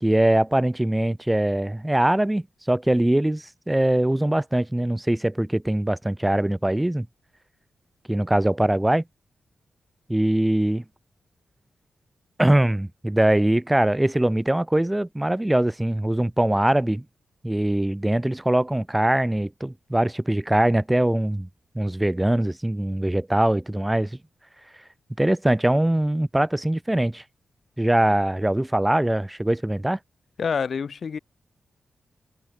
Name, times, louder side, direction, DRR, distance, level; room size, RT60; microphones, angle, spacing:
voice 1, 0.0-7.1 8.1-9.0 10.1-10.8 12.4-17.0 17.4-21.5 21.7-24.2 25.2-27.2 27.8-30.0, right 1 dB, 10° right, 0.6 m, -22 dB
voice 2, 30.4-31.2, left 6 dB, 55° left, 0.6 m, -27 dB
wide cardioid pair, 120°, 0 cm